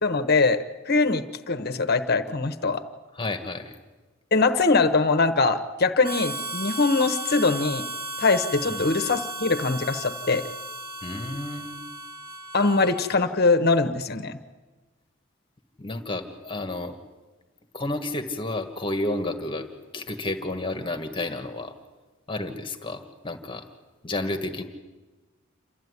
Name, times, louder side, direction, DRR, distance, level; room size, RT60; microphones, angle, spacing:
voice 1, 0.0-2.8 4.3-7.9 8.2-10.4 12.5-14.4, left 3 dB, 50° left, 8 dB, 1.0 m, -22 dB
voice 2, 3.1-3.8 8.6-8.9 11.0-11.9 15.8-17.0 17.7-19.7 19.9-21.7 22.3-23.7 24.0-24.6, left 2 dB, 25° left, 5 dB, 1.6 m, -31 dB
Harmonica, 6.0-13.3, right 2 dB, 45° right, 1.5 m, -35 dB
28.0 x 13.5 x 9.7 m, 1.3 s
head